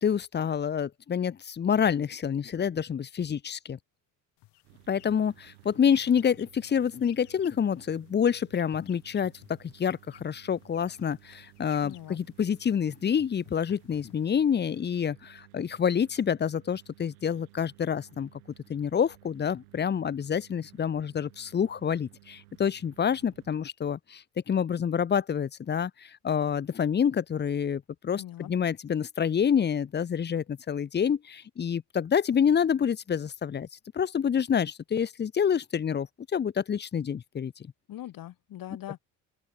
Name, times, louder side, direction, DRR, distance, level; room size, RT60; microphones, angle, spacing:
voice 1, 0.0-3.8 4.9-9.3 9.6-18.3 18.7-33.7 33.9-36.1 36.3-37.5, left 7 dB, 25° left, 0.7 m, -27 dB
sound 1, 4.4-14.8, left 17 dB, 70° left, 6.4 m, -57 dB
sound 2, 4.6-23.6, right 22 dB, 85° right, 5.0 m, -57 dB
voice 2, 11.8-12.2 28.2-28.5 37.9-39.0, left 13 dB, 50° left, 1.4 m, -41 dB
open air
hypercardioid pair, 65°, 43 cm